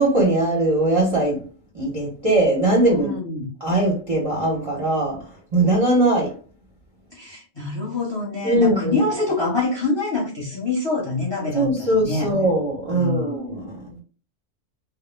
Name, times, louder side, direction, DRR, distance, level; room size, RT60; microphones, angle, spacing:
voice 1, 0.0-1.5 1.7-3.1 3.6-5.2 5.5-6.3 8.4-9.1 11.5-13.8, right 1 dB, 35° right, 0.6 m, -20 dB
voice 2, 3.0-3.5 7.1-12.3 12.9-13.3, left 3 dB, 25° left, 0.8 m, -25 dB
2.1 x 2.1 x 3.1 m
omnidirectional pair, 1.4 m